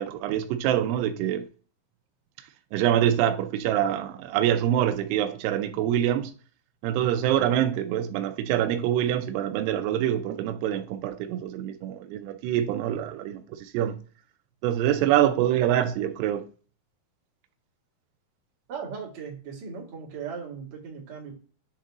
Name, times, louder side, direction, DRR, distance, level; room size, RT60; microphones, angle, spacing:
voice 1, 0.0-1.5 2.7-6.3 6.8-14.0 14.6-16.4, right 11 dB, 90° right, 2.8 m, -25 dB
voice 2, 18.7-21.3, right 6 dB, 50° right, 2.9 m, -38 dB
8.8 x 3.9 x 3.6 m
omnidirectional pair, 4.7 m